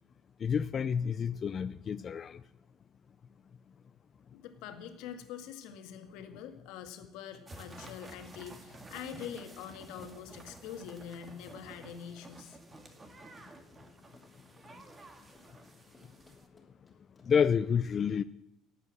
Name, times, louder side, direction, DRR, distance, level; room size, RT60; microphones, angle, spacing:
voice 1, 0.4-2.4 17.3-18.2, left 7 dB, 35° left, 0.4 m, -29 dB
voice 2, 4.3-12.6, left 8 dB, 80° left, 1.9 m, -45 dB
Run, 7.1-17.5, left 2 dB, 15° left, 3.2 m, -66 dB
sound 1, 7.5-16.5, right 2 dB, 20° right, 1.9 m, -52 dB
17.5 x 8.3 x 7.7 m
cardioid pair, 135°, 0 cm